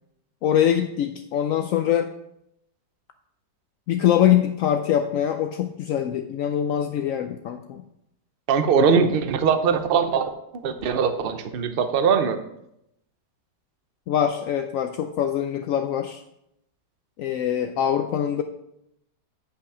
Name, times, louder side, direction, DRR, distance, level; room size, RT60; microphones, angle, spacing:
voice 1, 0.4-2.1 3.9-7.8 14.1-16.2 17.2-18.4, left 10 dB, 75° left, 7 dB, 0.7 m, -23 dB
voice 2, 8.5-10.3 10.6-12.4, right 6 dB, 55° right, 8 dB, 0.6 m, -21 dB
9.8 x 5.7 x 4.9 m, 0.80 s
omnidirectional pair, 1.9 m